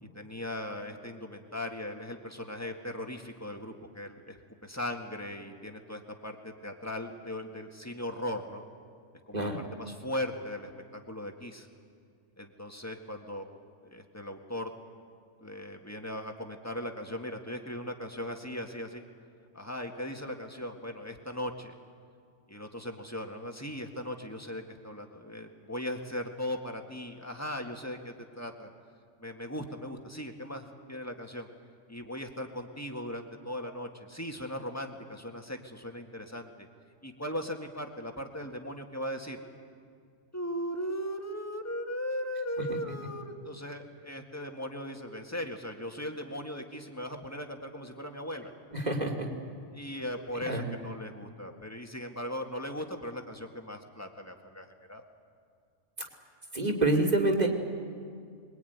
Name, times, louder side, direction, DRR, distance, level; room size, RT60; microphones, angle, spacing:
voice 1, 0.0-8.6 9.3-11.7 12.4-13.4 13.8-14.7 15.4-19.0 19.5-21.7 22.5-28.7 29.2-31.5 31.9-36.7 37.0-39.4 40.3-48.5 49.7-55.0, left 1 dB, 15° left, 3 dB, 1.9 m, -38 dB
voice 2, 48.7-49.1 50.5-50.6 56.5-57.5, right 2 dB, 35° right, 1 dB, 3.0 m, -26 dB
26.0 x 22.0 x 9.5 m, 2.2 s
omnidirectional pair, 1.2 m